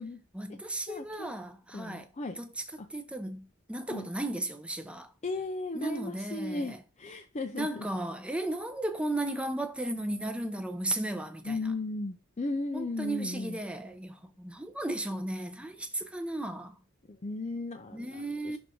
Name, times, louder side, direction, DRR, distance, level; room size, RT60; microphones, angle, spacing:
voice 1, 0.3-2.1 2.4-2.6 2.9-5.1 5.7-6.8 7.5-11.6 12.7-16.8 17.9-18.6, right 1 dB, 5° right, 0.7 m, -35 dB
voice 2, 0.9-1.3 1.7-2.4 2.8-2.9 3.9-4.1 5.2-7.9 11.4-13.6 17.1-18.6, left 2 dB, 35° left, 0.5 m, -36 dB
6.2 x 4.0 x 5.0 m
head